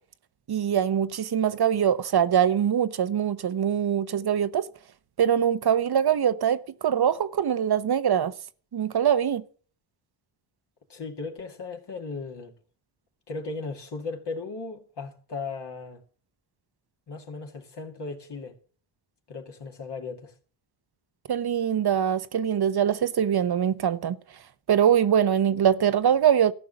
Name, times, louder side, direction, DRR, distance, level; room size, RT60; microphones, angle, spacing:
voice 1, 0.5-4.6 5.2-8.3 8.7-9.4 21.3-24.2 24.7-26.5, right 9 dB, 50° right, 0.9 m, -23 dB
voice 2, 10.9-12.5 13.3-16.0 17.1-18.5 19.3-20.3, left 3 dB, 55° left, 2.2 m, -36 dB
14.0 x 5.5 x 9.0 m
cardioid pair, 65°, 49 cm